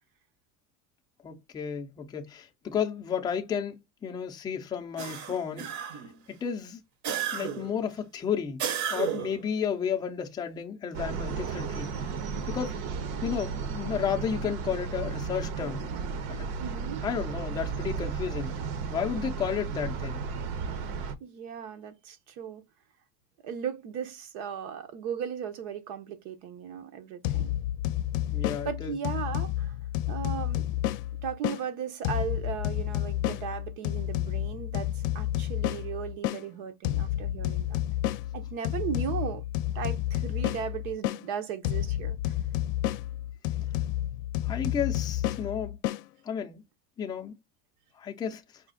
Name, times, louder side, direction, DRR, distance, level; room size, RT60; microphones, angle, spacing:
voice 1, 1.2-5.7 6.3-6.8 7.3-8.6 8.9-11.9 12.5-12.8 13.2-15.9 16.3-16.5 17.0-18.5 18.9-20.2 28.3-28.9 44.4-45.8 46.2-46.6 47.0-47.3 48.0-48.4, left 7 dB, 10° left, 0.3 m, -32 dB
sound 1, 5.0-6.2 7.0-7.8 8.6-9.4, right 8 dB, 40° right, 0.7 m, -32 dB
sound 2, 10.9-21.1, right 5 dB, 75° right, 0.9 m, -34 dB
voice 2, 16.6-17.0 21.2-22.6 23.4-27.5 28.6-29.7 30.1-30.7 31.2-37.8 38.3-39.4 39.7-42.3, right 8 dB, 90° right, 1.1 m, -36 dB
sound 3, 27.2-31.6 32.0-36.4 36.8-41.2 41.6-46.0, left 13 dB, 65° left, 0.5 m, -30 dB
5.0 x 2.3 x 3.7 m
cardioid pair, 160°, 43 cm